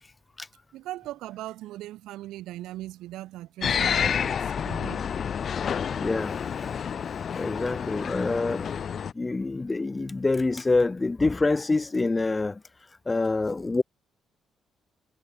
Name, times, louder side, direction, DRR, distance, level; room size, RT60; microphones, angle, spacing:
voice 1, 0.7-5.1 5.8-6.0, right 15 dB, 90° right, 3.8 m, -39 dB
sound 1, 3.6-9.1, left 7 dB, 55° left, 0.9 m, -29 dB
voice 2, 6.0-6.8 7.3-8.8 9.1-12.6 13.1-13.8, left 3 dB, 20° left, 0.8 m, -26 dB
cardioid pair, 90°, 0 cm